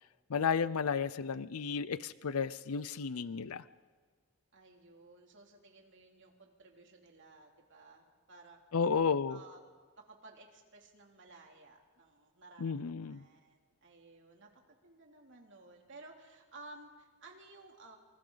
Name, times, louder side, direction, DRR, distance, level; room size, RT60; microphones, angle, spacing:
voice 1, 0.3-3.6 8.7-9.4 12.6-13.2, left 6 dB, 80° left, 16 dB, 0.6 m, -32 dB
voice 2, 3.1-3.5 4.5-8.6 9.3-9.6 10.0-18.0, right 2 dB, 55° right, 1 dB, 3.0 m, -56 dB
28.0 x 25.0 x 4.0 m, 1.4 s
head